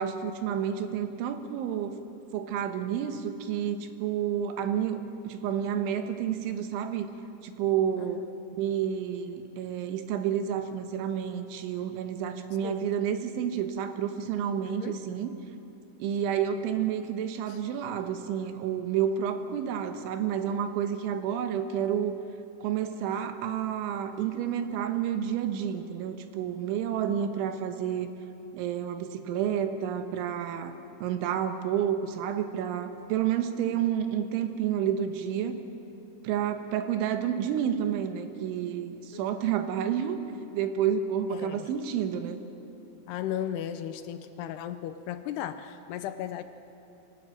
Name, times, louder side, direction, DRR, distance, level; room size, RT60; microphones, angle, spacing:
voice 1, 0.0-2.0 2.3-7.1 7.4-8.3 8.6-15.3 16.0-22.1 22.6-28.1 28.5-30.7 31.0-35.6 36.2-40.2 40.5-42.4, right 9 dB, 85° right, 8 dB, 3.6 m, -30 dB
voice 2, 14.6-15.0 17.5-17.6 33.7-33.8 39.1-39.4 41.3-41.7 43.1-46.4, left 10 dB, 80° left, 10 dB, 2.4 m, -36 dB
24.5 x 18.5 x 9.1 m, 2.9 s
omnidirectional pair, 5.4 m